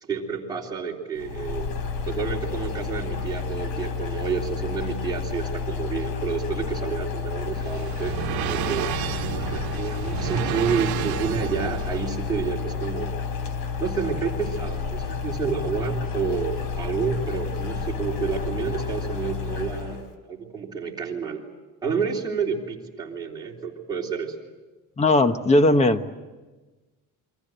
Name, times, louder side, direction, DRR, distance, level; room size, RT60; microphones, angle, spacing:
voice 1, 0.0-1.7 2.1-8.2 8.5-8.9 9.5-13.2 13.8-21.4 21.8-24.3, right 6 dB, 10° right, -4 dB, 3.5 m, -29 dB
sound 1, 1.2-20.1, left 6 dB, 75° left, 3.7 m, -30 dB
sound 2, 7.0-12.1, right 14 dB, 85° right, 1.1 m, -31 dB
voice 2, 25.0-26.1, left 2 dB, 20° left, 10 dB, 1.0 m, -18 dB
29.0 x 23.5 x 7.9 m, 1.2 s
cardioid pair, 175°, 36 cm